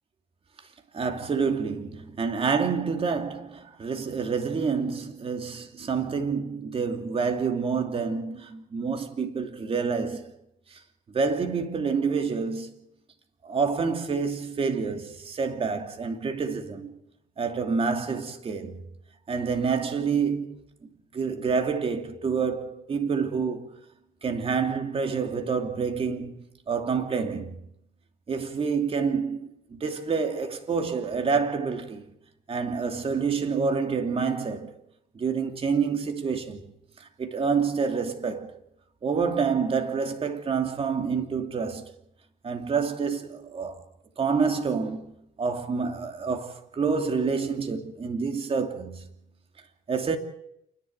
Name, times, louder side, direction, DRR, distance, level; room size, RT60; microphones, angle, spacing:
voice 1, 0.9-10.3 11.1-12.7 13.4-16.9 17.4-18.8 19.3-20.6 21.1-23.7 24.2-26.3 26.7-27.5 28.3-32.0 32.5-34.7 35.2-36.6 37.2-38.5 39.0-41.9 42.4-43.8 44.2-45.1 45.4-49.0 49.9-50.2, right 5 dB, 35° right, 2.7 m, -28 dB
28.0 x 11.0 x 9.1 m
cardioid pair, 110°, 17 cm